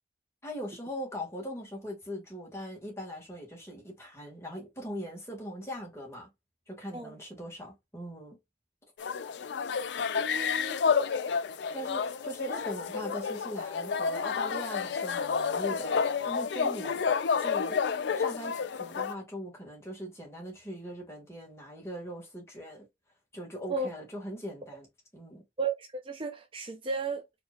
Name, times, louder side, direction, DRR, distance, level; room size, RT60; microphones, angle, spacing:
voice 1, 0.4-6.3 6.7-8.4 11.7-17.0 17.4-17.8 18.1-22.9 23.3-24.9 25.1-25.4, equal, 15° left, 1.7 m, -40 dB
sound 1, 9.0-19.1, left 6 dB, 70° left, 0.4 m, -30 dB
voice 2, 10.2-10.8 16.6-16.7 17.7-17.8 23.7-23.9 25.6-27.2, right 4 dB, 30° right, 0.4 m, -34 dB
4.5 x 2.9 x 2.3 m
head